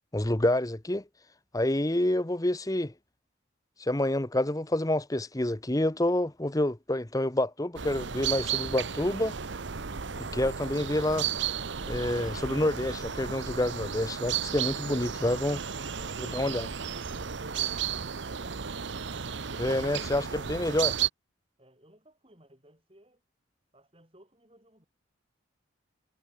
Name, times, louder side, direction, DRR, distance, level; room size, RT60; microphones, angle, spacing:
voice 1, 0.1-1.0 1.5-2.9 3.8-9.3 10.2-11.3 11.9-15.6 16.3-16.7 19.6-20.9, left 1 dB, 15° left, 0.9 m, -28 dB
sound 1, 7.8-21.1, right 8 dB, 65° right, 0.8 m, -34 dB
voice 2, 21.6-23.2 23.7-24.9, right 1 dB, 25° right, 6.1 m, -57 dB
head